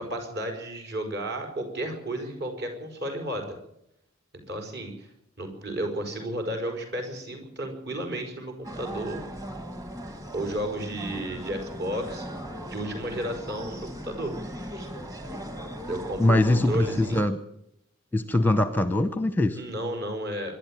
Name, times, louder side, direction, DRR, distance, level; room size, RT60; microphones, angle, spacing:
voice 1, 0.0-3.6 4.5-5.1 5.4-9.2 10.3-12.4 12.7-14.3 14.7-14.9 15.9-17.2 19.6-20.5, right 1 dB, 50° right, 4 dB, 5.4 m, -33 dB
sound 1, 8.6-17.3, equal, 15° right, 1.9 m, -38 dB
voice 2, 16.2-17.4 18.1-19.6, left 1 dB, 10° left, 12 dB, 0.8 m, -22 dB
25.0 x 11.5 x 9.0 m, 0.76 s
head